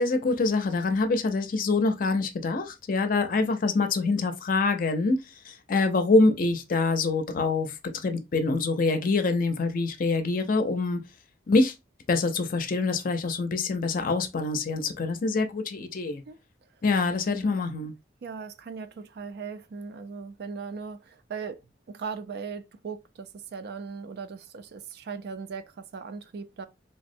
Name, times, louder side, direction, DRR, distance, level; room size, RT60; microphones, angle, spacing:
voice 1, 0.0-5.2 5.5-11.0 11.5-11.7 12.1-16.2 16.8-17.9, left 3 dB, 50° left, 0.5 m, -25 dB
voice 2, 18.2-21.6 21.9-26.7, right 5 dB, 60° right, 0.4 m, -38 dB
3.3 x 2.0 x 2.6 m
head